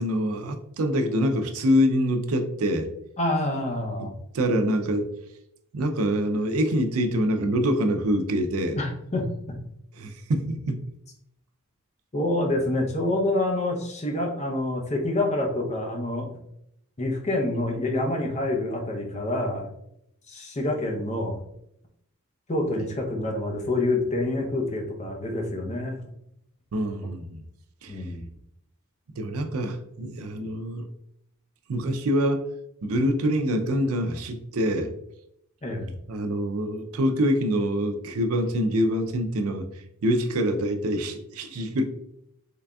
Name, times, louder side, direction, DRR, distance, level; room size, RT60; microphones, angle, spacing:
voice 1, 0.0-2.9 4.0-4.1 4.3-5.1 5.7-8.8 10.0-10.9 26.7-27.4 27.8-28.0 29.2-30.9 31.7-32.4 32.8-34.9 36.1-39.6 40.0-41.8, equal, 85° right, 5 dB, 0.5 m, -25 dB
voice 2, 3.2-4.1 8.8-9.3 12.1-16.3 17.0-19.7 20.3-21.4 22.5-26.0 27.9-28.2 35.6-35.9, left 2 dB, 30° left, 1 dB, 0.7 m, -27 dB
3.8 x 3.3 x 2.3 m, 0.76 s
head